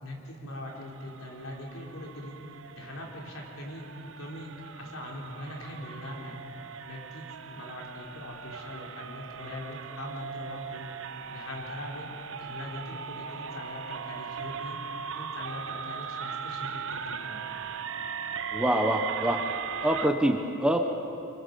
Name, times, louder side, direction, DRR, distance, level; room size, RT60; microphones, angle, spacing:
voice 1, 0.0-2.4 2.7-3.9 4.2-6.4 6.9-10.9 11.3-12.1 12.4-14.8 15.1-17.5, left 1 dB, 70° left, -1 dB, 3.6 m, -41 dB
sound 1, 0.7-20.1, right 6 dB, 60° right, 0.8 m, -39 dB
voice 2, 18.5-19.4 19.8-20.8, right 1 dB, 5° right, 4 dB, 0.9 m, -25 dB
26.0 x 22.5 x 5.3 m, 2.8 s
head